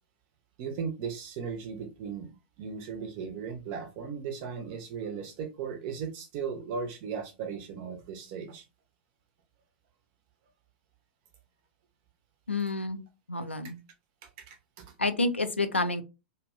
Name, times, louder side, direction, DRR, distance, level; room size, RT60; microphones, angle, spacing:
voice 1, 0.6-2.3 2.6-8.7 14.2-14.9, right 6 dB, 45° right, 0.6 m, -37 dB
voice 2, 12.5-13.0 13.3-13.8 15.0-16.0, left 2 dB, 85° left, 0.4 m, -29 dB
2.7 x 2.2 x 2.4 m
figure-of-eight pair, 95°, 6 cm